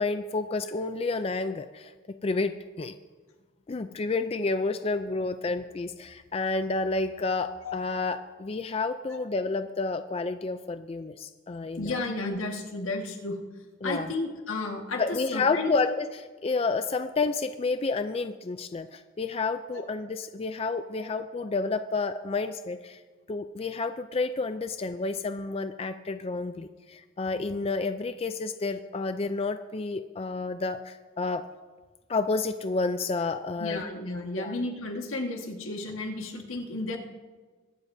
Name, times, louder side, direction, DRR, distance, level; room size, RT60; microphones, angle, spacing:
voice 1, 0.0-1.9 2.2-3.0 3.7-12.0 13.8-14.1 15.0-23.0 23.3-31.4 32.1-33.8 34.4-34.5, left 3 dB, 30° left, 9 dB, 0.4 m, -30 dB
voice 2, 11.8-13.4 13.8-15.7 19.7-19.8 21.0-21.1 22.3-22.4 33.6-37.0, left 2 dB, 80° left, 3 dB, 1.6 m, -33 dB
22.5 x 12.0 x 2.7 m, 1.4 s
head